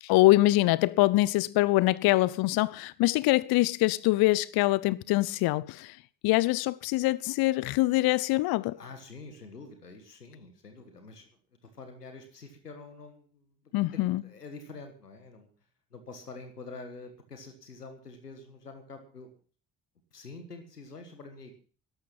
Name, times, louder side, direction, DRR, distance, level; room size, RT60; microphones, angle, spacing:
voice 1, 0.0-6.0 6.2-8.8 13.7-14.2, left 18 dB, 55° left, 0.6 m, -24 dB
voice 2, 8.7-11.3 11.6-13.5 13.9-15.5 15.9-19.3 20.1-21.6, left 3 dB, 90° left, 1.7 m, -46 dB
13.5 x 12.0 x 5.7 m
figure-of-eight pair, 45°, 46 cm